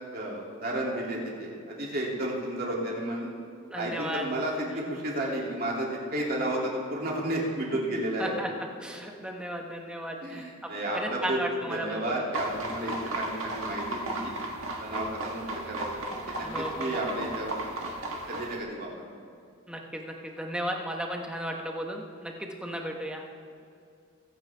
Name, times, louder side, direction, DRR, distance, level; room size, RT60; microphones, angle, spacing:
voice 1, 0.1-3.3 3.7-8.3 10.2-14.3 14.8-17.6 18.3-18.9, right 1 dB, 45° right, -3 dB, 2.8 m, -32 dB
voice 2, 3.7-4.2 8.2-8.5 8.8-12.3 16.4-17.0 19.7-23.2, equal, 5° right, 1 dB, 1.1 m, -35 dB
sound 1, 12.3-18.6, right 1 dB, 85° right, 1.6 m, -35 dB
22.0 x 8.8 x 3.5 m, 2.4 s
head